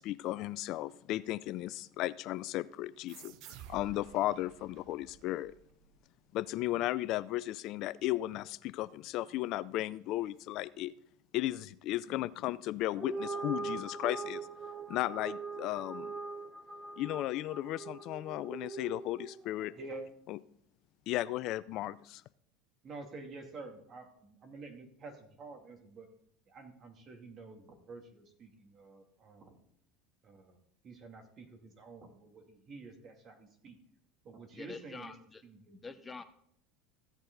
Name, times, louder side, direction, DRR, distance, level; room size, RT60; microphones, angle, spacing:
voice 1, 0.0-3.3 3.7-5.5 6.3-10.9 11.3-14.4 14.9-16.2 17.0-19.7 20.3-20.4 21.1-22.2, left 15 dB, 55° left, 17 dB, 0.4 m, -35 dB
sound 1, 3.1-6.3, right 12 dB, 60° right, 0.6 m, -53 dB
sound 2, 12.9-19.5, right 4 dB, 15° right, 0.9 m, -41 dB
voice 2, 22.8-26.1 26.5-29.6 30.2-30.6 30.8-33.8 34.2-35.1 35.4-35.8, right 3 dB, 40° right, 4 dB, 2.5 m, -49 dB
voice 3, 34.5-35.4 35.8-36.2, left 4 dB, 20° left, 9 dB, 0.8 m, -46 dB
15.0 x 8.1 x 4.0 m, 0.69 s
supercardioid pair, 100°, 0 cm